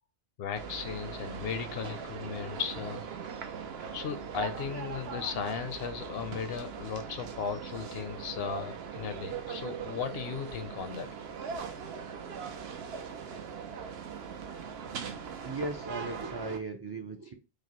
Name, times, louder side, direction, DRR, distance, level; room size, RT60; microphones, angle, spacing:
voice 1, 0.4-3.0 3.9-11.1, left 6 dB, 70° left, 0.8 m, -36 dB
sound 1, 0.6-16.6, right 6 dB, 75° right, 0.9 m, -40 dB
voice 2, 15.3-17.3, right 2 dB, 45° right, 0.3 m, -37 dB
4.9 x 2.0 x 2.9 m
omnidirectional pair, 1.0 m